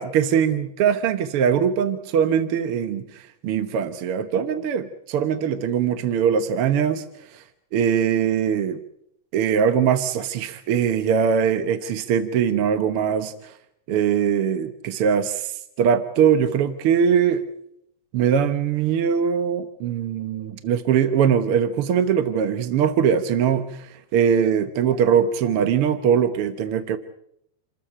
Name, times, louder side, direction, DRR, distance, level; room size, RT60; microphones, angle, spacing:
voice 1, 0.0-7.0 7.3-7.4 7.7-8.8 9.3-13.5 13.9-17.4 18.1-27.0, right 8 dB, 60° right, 10 dB, 1.5 m, -21 dB
28.5 x 14.0 x 10.0 m, 0.76 s
omnidirectional pair, 3.7 m